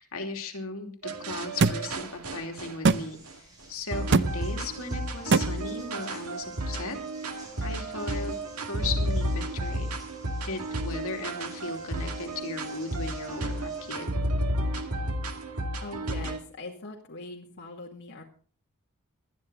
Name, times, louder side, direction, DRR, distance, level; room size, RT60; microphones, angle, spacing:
voice 1, 0.0-8.4 8.7-9.9 10.4-14.1, left 3 dB, 70° left, 3 dB, 2.9 m, -37 dB
Piano beat by viniibeats, 1.0-3.3 3.9-16.4, right 1 dB, 80° right, 2.1 m, -32 dB
sound 1, 1.6-1.8 2.8-3.0 4.1-4.3 5.3-5.5, right 4 dB, 55° right, 0.7 m, -20 dB
sound 2, 2.8-14.0, right 2 dB, 20° right, 7.8 m, -54 dB
voice 2, 15.8-18.2, left 2 dB, 50° left, -1 dB, 2.3 m, -42 dB
20.0 x 12.5 x 3.9 m, 0.42 s
head